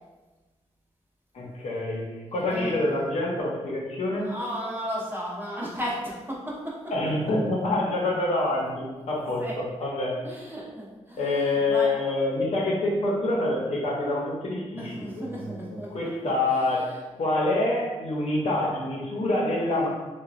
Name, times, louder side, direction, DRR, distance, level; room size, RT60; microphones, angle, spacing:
voice 1, 1.3-2.0 2.3-4.3 6.9-10.2 11.2-16.9 17.2-19.9, left 2 dB, 65° left, -3 dB, 0.7 m, -26 dB
voice 2, 2.4-2.8 4.2-6.7 9.2-9.5 10.2-11.9 14.8-15.9 16.2-16.3, equal, 15° right, -4 dB, 0.7 m, -34 dB
2.9 x 2.2 x 2.4 m, 1.2 s
cardioid pair, 95°, 12 cm